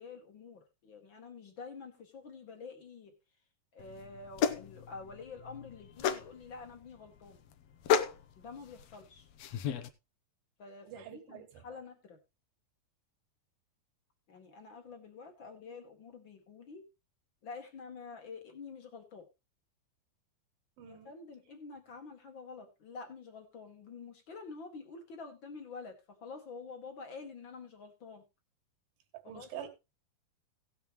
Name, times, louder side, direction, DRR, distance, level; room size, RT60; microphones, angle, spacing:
voice 1, 0.0-3.1 3.7-7.4 8.4-9.3 10.6-12.2 14.3-16.8 17.4-19.3 20.8-28.2 29.2-29.5, left 4 dB, 40° left, 2.0 m, -48 dB
sound 1, 3.8-9.9, left 8 dB, 80° left, 1.5 m, -34 dB
voice 2, 10.9-11.8 20.8-21.1 29.1-29.7, right 10 dB, 80° right, 3.5 m, -46 dB
17.5 x 7.2 x 3.0 m
omnidirectional pair, 4.1 m